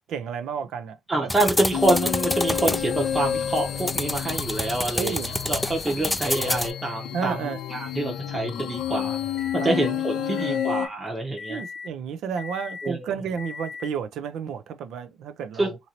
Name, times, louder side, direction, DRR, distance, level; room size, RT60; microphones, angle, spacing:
voice 1, 0.1-1.3 5.0-5.3 7.1-7.6 9.6-10.6 11.5-15.8, right 7 dB, 80° right, 0.4 m, -32 dB
voice 2, 1.1-5.2 5.5-9.2 9.5-11.6 12.8-13.0 15.6-15.7, right 2 dB, 20° right, 0.8 m, -26 dB
sound 1, 1.3-6.7, left 1 dB, 5° left, 0.3 m, -29 dB
sound 2, 1.7-10.9, left 10 dB, 80° left, 0.4 m, -30 dB
sound 3, 7.8-9.9 10.4-10.9 11.4-11.9 12.4-12.9 13.4-13.9, left 5 dB, 45° left, 0.8 m, -40 dB
2.9 x 2.6 x 2.9 m
cardioid pair, 90°, 0 cm